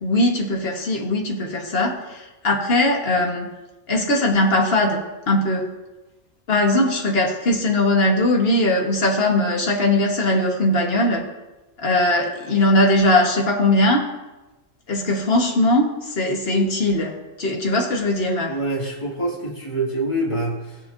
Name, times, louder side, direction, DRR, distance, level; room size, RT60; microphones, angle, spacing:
voice 1, 0.0-3.5 3.9-5.7 6.5-11.2 11.8-14.0 14.9-18.5, left 1 dB, 50° left, 1 dB, 1.6 m, -20 dB
voice 2, 18.5-20.9, right 1 dB, 25° left, -5 dB, 2.3 m, -26 dB
18.5 x 6.7 x 2.6 m, 1.1 s
omnidirectional pair, 1.4 m